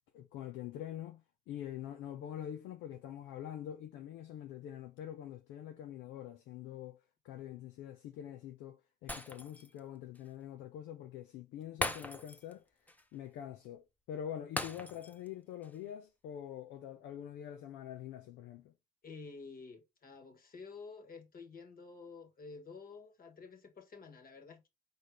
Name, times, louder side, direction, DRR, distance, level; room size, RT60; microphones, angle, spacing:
voice 1, 0.1-1.2 1.5-12.6 13.1-18.7, left 10 dB, 65° left, 0.7 m, -45 dB
Shatter, 9.1-9.8 10.1-10.3 11.8-12.6 12.9-13.0 14.6-15.3 15.6-15.8, left 1 dB, 10° left, 1.0 m, -39 dB
voice 2, 19.0-24.7, left 4 dB, 45° left, 1.7 m, -50 dB
5.1 x 3.9 x 4.8 m
hypercardioid pair, 45°, 21 cm